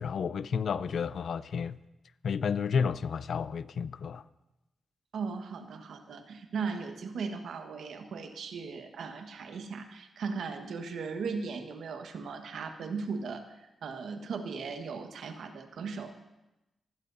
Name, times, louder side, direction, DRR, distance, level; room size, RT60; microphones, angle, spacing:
voice 1, 0.0-1.8 2.2-4.2, left 6 dB, 70° left, 0.5 m, -31 dB
voice 2, 5.1-16.1, right 5 dB, 80° right, 1.4 m, -37 dB
24.0 x 16.0 x 2.7 m
cardioid pair, 70°, 0 cm